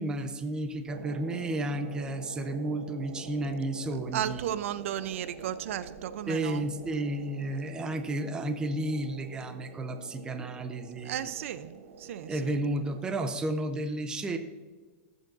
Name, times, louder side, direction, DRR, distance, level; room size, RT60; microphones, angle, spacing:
voice 1, 0.0-4.5 6.3-11.3 12.3-14.4, right 1 dB, 10° right, 8 dB, 0.6 m, -32 dB
sound 1, 0.9-13.4, right 5 dB, 80° right, 1.0 m, -47 dB
voice 2, 4.1-6.7 11.0-12.5, right 11 dB, 65° right, 14 dB, 0.5 m, -34 dB
14.5 x 7.9 x 2.6 m, 1.3 s
supercardioid pair, 165°, 8 cm